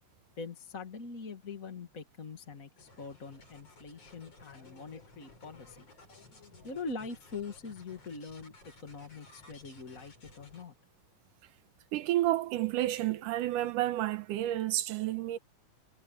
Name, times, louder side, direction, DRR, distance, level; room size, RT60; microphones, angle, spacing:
voice 1, 0.4-5.9 6.1-10.7, left 4 dB, 30° left, 1.8 m, -43 dB
sound 1, 2.8-10.7, left 2 dB, 45° left, 8.4 m, -57 dB
voice 2, 11.9-15.4, right 15 dB, 85° right, 2.5 m, -30 dB
omnidirectional pair, 3.7 m